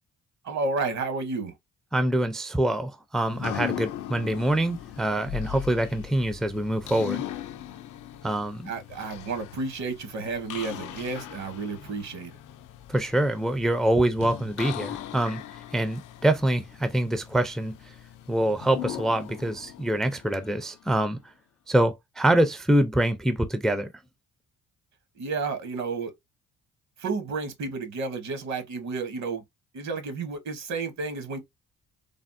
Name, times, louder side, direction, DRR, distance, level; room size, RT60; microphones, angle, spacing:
voice 1, 0.4-1.5 8.7-12.3 25.2-26.1 27.0-29.4 29.7-31.4, right 4 dB, 65° right, 1.0 m, -31 dB
voice 2, 1.9-7.2 8.2-8.7 12.9-15.4 15.7-17.8 18.3-21.2 21.7-23.9, right 1 dB, ahead, 0.3 m, -25 dB
sound 1, 3.2-21.0, left 12 dB, 85° left, 0.5 m, -39 dB
3.4 x 2.0 x 2.5 m
cardioid pair, 90°, 30 cm